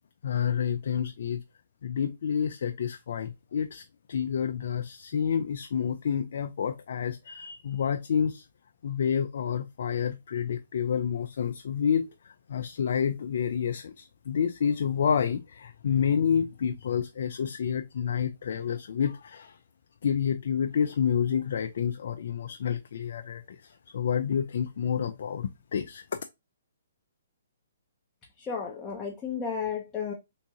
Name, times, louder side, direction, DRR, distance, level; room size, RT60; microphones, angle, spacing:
voice 1, 0.2-1.4 1.8-8.4 8.8-19.5 20.0-26.0, left 7 dB, 65° left, 0.4 m, -29 dB
voice 2, 28.4-30.1, left 6 dB, 15° left, 0.7 m, -33 dB
3.5 x 2.8 x 2.7 m
hypercardioid pair, 150°, 0 cm